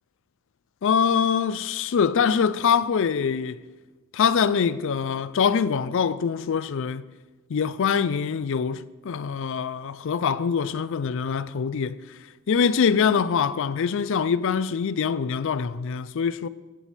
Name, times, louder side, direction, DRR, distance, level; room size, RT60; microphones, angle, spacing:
voice 1, 0.8-3.6 4.1-7.1 7.5-12.0 12.5-16.5, left 6 dB, 60° left, 0.4 m, -24 dB
16.0 x 8.3 x 3.3 m
head